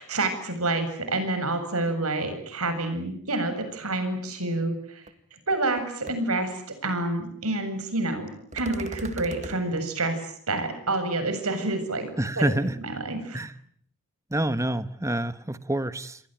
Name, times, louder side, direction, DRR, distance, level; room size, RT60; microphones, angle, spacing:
voice 1, 0.0-5.0 5.5-13.4, right 2 dB, 75° right, 7.5 m, -28 dB
sound 1, 5.1-5.2 5.5-5.8 6.1-6.2 8.5-9.6, right 2 dB, 30° right, 1.8 m, -38 dB
voice 2, 12.2-12.8 13.3-13.5 14.3-16.2, right 1 dB, 15° right, 1.3 m, -27 dB
28.5 x 22.5 x 9.2 m
head